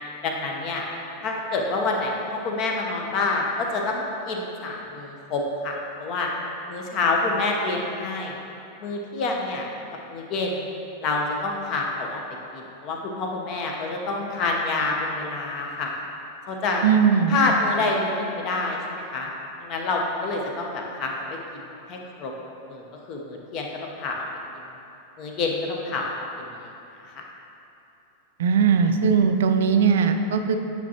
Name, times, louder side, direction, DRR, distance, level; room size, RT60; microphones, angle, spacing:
voice 1, 0.2-0.8 1.2-6.3 6.7-8.4 8.8-9.7 10.1-10.7 11.0-12.2 12.5-15.9 16.5-16.8 17.3-19.3 19.6-21.1 21.5-22.3 22.7-24.3 25.2-26.1 26.4-26.7 27.1-27.2, left 3 dB, 40° left, 0 dB, 1.0 m, -27 dB
voice 2, 16.8-17.3 28.4-30.6, right 6 dB, 60° right, 7 dB, 0.4 m, -19 dB
9.6 x 5.8 x 2.9 m, 2.8 s
figure-of-eight pair, 90°, 0 cm